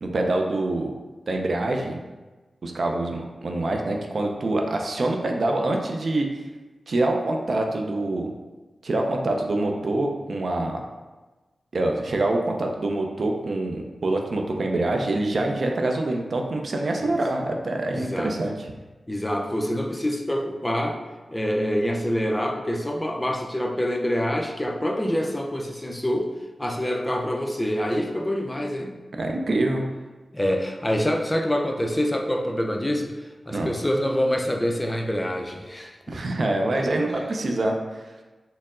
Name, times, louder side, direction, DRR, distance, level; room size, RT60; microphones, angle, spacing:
voice 1, 0.0-0.9 1.3-2.0 2.6-6.3 6.9-8.3 8.8-10.8 11.7-18.7 29.2-29.9 33.5-33.7 36.1-37.8, right 2 dB, 65° right, 2 dB, 0.5 m, -25 dB
voice 2, 17.9-18.4 19.1-21.0 21.3-26.3 26.6-29.0 30.3-33.1 33.5-36.2, equal, 20° left, 2 dB, 0.5 m, -26 dB
4.4 x 2.0 x 3.6 m, 1.2 s
cardioid pair, 50°, 0 cm